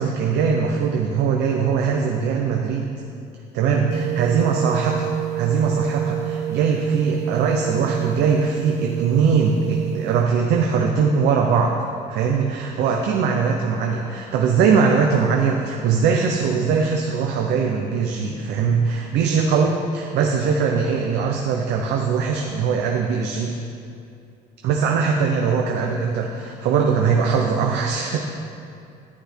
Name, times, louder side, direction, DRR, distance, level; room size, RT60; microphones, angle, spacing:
voice 1, 0.0-2.9 3.5-11.7 12.1-23.6 24.6-28.2, right 5 dB, 85° right, 1 dB, 0.9 m, -21 dB
sound 1, 3.9-10.3, right 11 dB, 40° right, 0.5 m, -28 dB
10.0 x 9.4 x 4.5 m, 2.5 s
cardioid pair, 110°, 17 cm